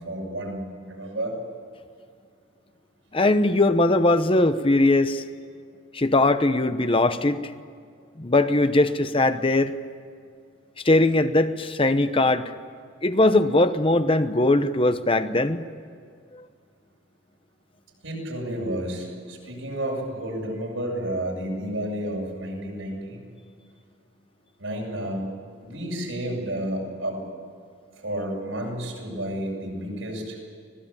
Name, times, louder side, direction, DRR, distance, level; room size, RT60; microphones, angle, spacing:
voice 1, 0.0-1.3 18.0-23.2 24.6-25.3 25.6-27.2 28.0-30.4, right 1 dB, 80° right, -1 dB, 8.0 m, -31 dB
voice 2, 3.1-5.2 5.9-7.5 8.2-9.7 10.8-12.5 13.0-15.6 16.3-16.4, left 2 dB, 30° left, 10 dB, 0.9 m, -20 dB
25.0 x 19.5 x 8.8 m, 2.2 s
head